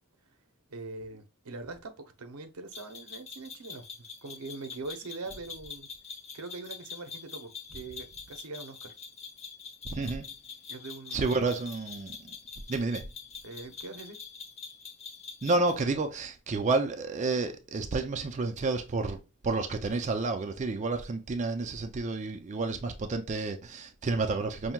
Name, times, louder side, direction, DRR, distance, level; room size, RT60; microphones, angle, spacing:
voice 1, 0.7-1.9 2.2-3.8 4.2-5.9 6.3-8.9 10.7-11.3 13.4-14.2, right 3 dB, 90° right, 0.7 m, -42 dB
sound 1, 2.7-15.8, left 6 dB, 30° left, 1.0 m, -45 dB
voice 2, 9.8-10.3 11.1-12.3 12.7-13.1 15.4-24.7, right 3 dB, 35° right, 0.4 m, -30 dB
5.6 x 2.7 x 2.3 m
head